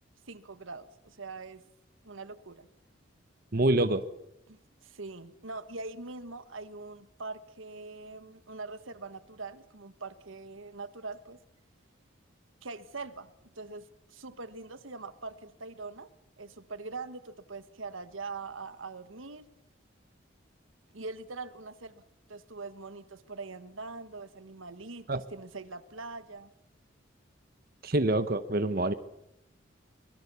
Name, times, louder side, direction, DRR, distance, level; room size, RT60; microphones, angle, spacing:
voice 1, 0.3-1.6 2.0-2.7 4.5-11.4 12.6-16.1 16.4-19.5 20.9-22.0 22.3-26.5, right 3 dB, 85° right, 1.4 m, -43 dB
voice 2, 3.5-4.0 25.1-25.2 27.8-28.9, right 2 dB, 50° right, 1.0 m, -26 dB
25.0 x 21.5 x 7.0 m
head